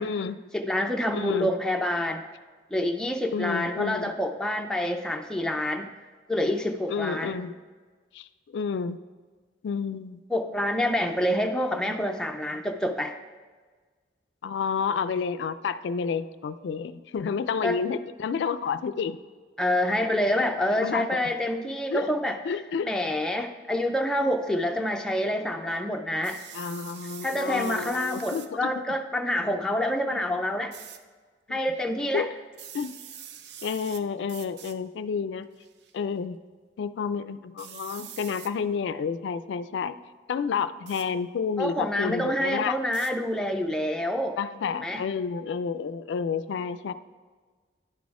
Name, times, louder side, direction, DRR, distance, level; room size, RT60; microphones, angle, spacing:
voice 1, 0.0-0.4 1.1-1.5 3.3-4.1 6.9-7.5 8.1-8.3 8.5-9.0 9.6-10.2 14.4-19.2 20.4-21.2 21.9-22.1 22.4-22.9 26.5-28.7 31.5-31.6 32.1-32.3 32.7-33.0 33.6-35.5 35.9-36.4 36.8-40.0 40.3-42.7 44.4-46.9, left 6 dB, 80° left, 14 dB, 0.3 m, -30 dB
voice 2, 0.5-2.2 2.7-5.9 6.3-7.4 10.3-13.1 17.6-17.8 19.6-22.6 22.8-26.4 27.2-30.7 31.5-32.3 41.6-44.4 44.8-45.0, left 1 dB, 5° left, 3 dB, 0.4 m, -27 dB
sound 1, 26.2-28.5 30.7-31.0 32.5-34.0 34.3-34.8 35.6-35.9 37.6-38.5 40.9-41.1 42.9-43.1, right 9 dB, 70° right, 0.5 m, -44 dB
10.5 x 4.1 x 4.7 m, 1.4 s
head